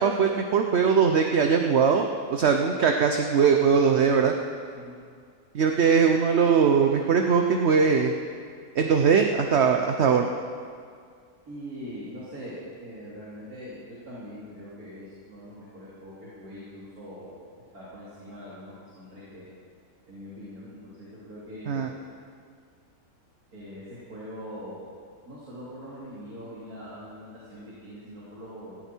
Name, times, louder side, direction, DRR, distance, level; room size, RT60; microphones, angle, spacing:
voice 1, 0.0-4.3 5.5-8.1 8.7-10.3 21.7-21.9, right 6 dB, 55° right, 4 dB, 1.0 m, -21 dB
voice 2, 11.5-17.4 17.7-19.4 20.1-21.9 23.5-24.9 25.3-28.8, equal, 85° right, -9 dB, 3.8 m, -42 dB
17.5 x 15.0 x 4.6 m, 2.1 s
omnidirectional pair, 1.5 m